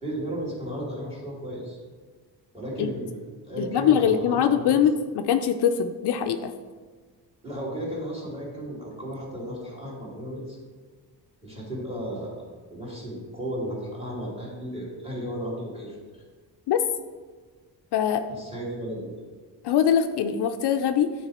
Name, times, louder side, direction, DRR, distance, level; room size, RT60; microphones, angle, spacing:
voice 1, 0.0-1.8 2.5-4.8 7.4-10.6 11.4-12.4 12.7-16.2 18.3-19.2, equal, 15° right, -4 dB, 2.4 m, -34 dB
voice 2, 3.6-6.5 16.7-16.8 17.9-18.2 19.6-21.1, left 8 dB, 70° left, 7 dB, 0.6 m, -22 dB
9.0 x 4.6 x 4.2 m, 1.5 s
cardioid pair, 135°, 41 cm